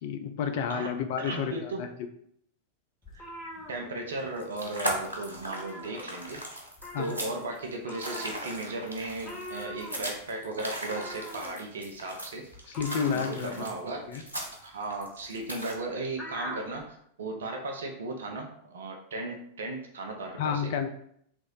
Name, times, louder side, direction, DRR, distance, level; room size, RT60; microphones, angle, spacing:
voice 1, 0.0-1.9 6.9-7.1 12.7-13.7 14.1-14.2 20.4-20.9, left 7 dB, 50° left, 7 dB, 0.4 m, -30 dB
voice 2, 1.2-1.9 3.1-3.3 3.7-6.4 7.0-12.8 13.0-14.1 14.6-20.7, right 2 dB, 65° right, 2 dB, 0.6 m, -36 dB
sound 1, 3.0-4.5 4.8-5.0 5.3-6.4 6.8-16.9, left 1 dB, 20° left, 0.8 m, -43 dB
sound 2, 4.2-15.7, right 1 dB, 90° left, 0.8 m, -38 dB
3.1 x 2.6 x 3.7 m, 0.68 s
figure-of-eight pair, 90°, 0 cm